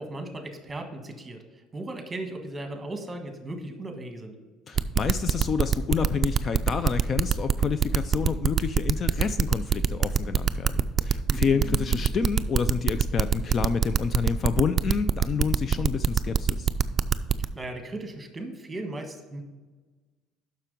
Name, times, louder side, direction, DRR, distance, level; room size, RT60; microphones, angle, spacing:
voice 1, 0.0-1.4 1.7-4.3 11.3-12.0 17.5-19.4, right 2 dB, 15° right, 5 dB, 1.4 m, -37 dB
voice 2, 4.7-16.7, left 6 dB, 40° left, 12 dB, 0.4 m, -29 dB
sound 1, 4.8-17.5, right 7 dB, 35° right, 0.4 m, -23 dB
7.3 x 5.9 x 5.2 m, 1.3 s
cardioid pair, 105°, 0 cm